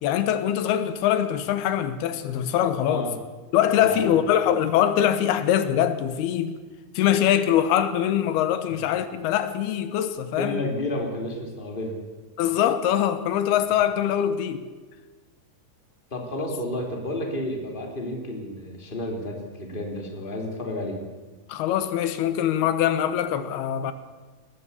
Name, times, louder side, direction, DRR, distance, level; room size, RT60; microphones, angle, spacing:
voice 1, 0.0-3.1 3.5-6.6 6.9-10.6 12.4-14.6 21.5-23.9, left 10 dB, 85° left, 11 dB, 3.1 m, -23 dB
voice 2, 3.8-4.2 8.7-8.8 10.4-12.0 16.1-21.0, left 1 dB, 15° left, 2 dB, 3.2 m, -31 dB
20.0 x 16.0 x 8.3 m, 1.3 s
omnidirectional pair, 4.5 m